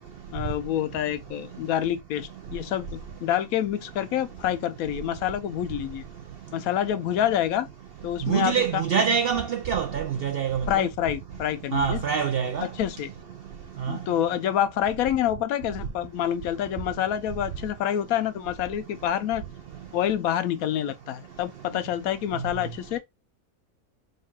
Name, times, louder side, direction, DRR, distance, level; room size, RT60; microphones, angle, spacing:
voice 1, 0.3-6.0 6.5-7.7 8.0-8.8 10.7-12.0 12.7-13.1 13.9-19.4 19.9-23.0, left 11 dB, 90° left, 1.1 m, -27 dB
voice 2, 8.2-10.9 11.7-12.7 13.8-14.0, right 7 dB, 70° right, 0.5 m, -25 dB
3.6 x 2.3 x 4.4 m
omnidirectional pair, 1.5 m